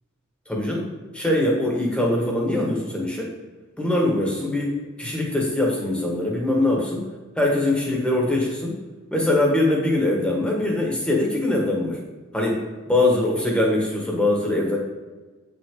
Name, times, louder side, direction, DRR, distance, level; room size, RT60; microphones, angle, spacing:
voice 1, 0.5-3.3 3.8-7.1 7.4-8.8 9.1-12.0 12.3-14.8, left 1 dB, 5° left, -1 dB, 1.7 m, -22 dB
8.6 x 6.1 x 3.9 m, 1.3 s
head